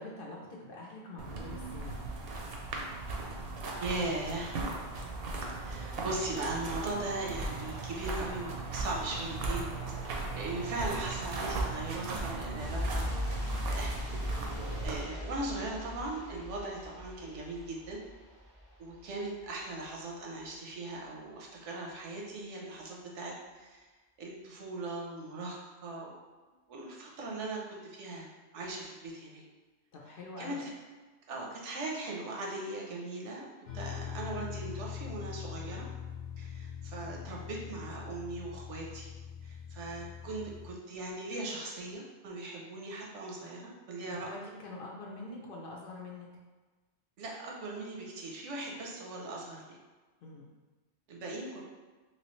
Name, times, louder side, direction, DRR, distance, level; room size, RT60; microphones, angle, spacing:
voice 1, 0.0-2.0 29.9-30.6 44.0-46.3 50.2-50.5, left 2 dB, 60° left, -3 dB, 0.7 m, -45 dB
sound 1, 1.2-15.0, right 3 dB, 60° right, 0.7 m, -37 dB
voice 2, 3.8-4.6 5.4-13.1 13.7-14.0 14.4-18.0 18.8-23.9 24.2-26.1 26.7-28.3 28.5-29.4 30.4-30.7 31.3-33.5 33.7-35.9 36.4-39.1 39.4-44.3 47.2-49.8 51.1-51.6, right 2 dB, 85° right, -2 dB, 1.0 m, -39 dB
sound 2, 12.6-19.1 19.3-19.5, left 1 dB, 15° left, 0.6 m, -38 dB
sound 3, 33.7-40.7, left 8 dB, 85° left, 0.9 m, -42 dB
3.1 x 3.0 x 3.0 m, 1.3 s
omnidirectional pair, 1.2 m